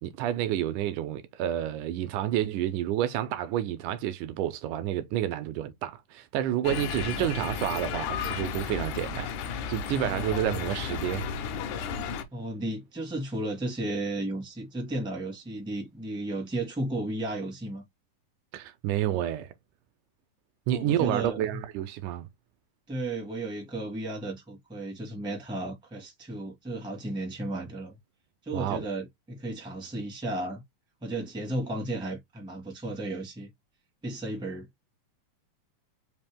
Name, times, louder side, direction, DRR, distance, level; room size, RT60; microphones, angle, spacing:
voice 1, 0.0-9.3 9.7-11.3 11.7-11.8 18.5-19.5 20.7-22.3 28.5-28.9, right 12 dB, 80° right, 1.9 m, -29 dB
sound 1, 6.6-12.2, left 6 dB, 75° left, 2.0 m, -33 dB
voice 2, 9.9-10.6 12.3-17.8 20.7-21.6 22.9-28.0 28.4-30.6 31.0-33.5 34.0-34.7, right 1 dB, 5° right, 0.5 m, -34 dB
5.2 x 2.8 x 3.5 m
omnidirectional pair, 3.9 m